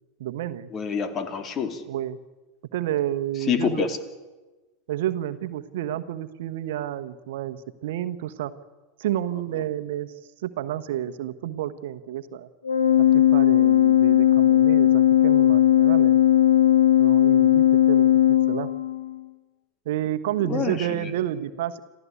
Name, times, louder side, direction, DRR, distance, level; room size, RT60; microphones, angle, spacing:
voice 1, 0.2-0.7 1.9-2.2 2.7-3.9 4.9-8.5 9.0-10.1 10.4-12.5 13.1-16.2 17.0-18.7 19.8-21.8, right 12 dB, 70° right, 11 dB, 1.2 m, -30 dB
voice 2, 0.7-1.8 3.4-4.0 9.5-9.6 20.4-21.1, left 7 dB, 35° left, 9 dB, 2.9 m, -27 dB
Organ, 12.6-19.2, left 11 dB, 90° left, 1.1 m, -18 dB
27.5 x 15.0 x 8.4 m, 1.2 s
hypercardioid pair, 90°, 0 cm